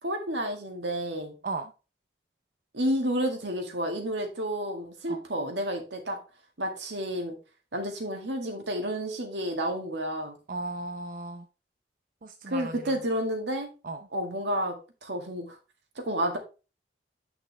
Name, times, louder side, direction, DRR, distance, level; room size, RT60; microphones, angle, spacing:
voice 1, 0.0-1.4 2.7-6.2 6.6-7.4 7.7-10.4 12.5-13.7 14.1-15.6 16.0-16.4, equal, 80° right, 4 dB, 1.9 m, -30 dB
voice 2, 10.5-11.4 12.2-12.9 13.8-14.0, right 3 dB, 50° right, 5 dB, 0.6 m, -36 dB
8.7 x 6.0 x 3.3 m, 0.32 s
head